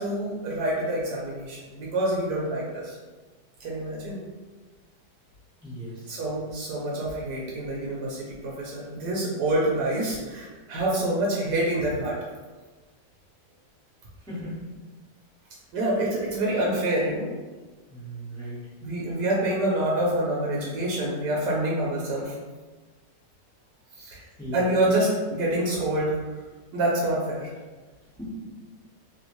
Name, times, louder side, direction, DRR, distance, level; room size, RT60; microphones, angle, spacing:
voice 1, 0.0-3.0 3.6-4.2 6.1-12.2 15.7-17.3 18.8-22.3 24.0-24.2 24.5-26.1 26.7-27.5, right 1 dB, 75° right, -4 dB, 1.3 m, -26 dB
voice 2, 5.6-6.2 14.3-14.6 17.9-18.6 24.4-24.6 28.2-28.3, equal, 5° left, -9 dB, 0.4 m, -37 dB
3.1 x 2.6 x 2.9 m, 1.3 s
omnidirectional pair, 1.8 m